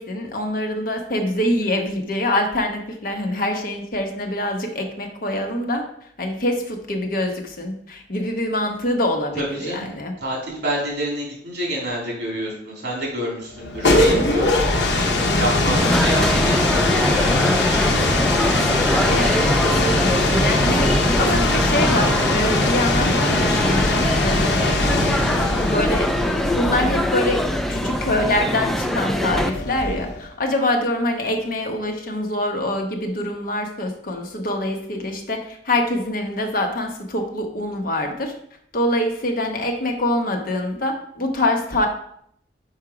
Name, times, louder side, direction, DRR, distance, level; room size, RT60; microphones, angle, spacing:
voice 1, 0.0-5.9 6.2-10.1 15.3-15.5 19.1-24.8 25.2-25.4 25.7-26.1 26.5-38.3 38.7-41.9, left 1 dB, 55° left, 3 dB, 1.1 m, -25 dB
voice 2, 9.4-9.9 10.2-14.6 14.9-18.2, equal, 65° right, -2 dB, 2.8 m, -28 dB
sound 1, 13.5-30.3, left 2 dB, 80° left, 0.9 m, -21 dB
sound 2, 15.8-29.5, equal, ahead, 0.3 m, -23 dB
5.8 x 4.5 x 5.0 m, 0.67 s
head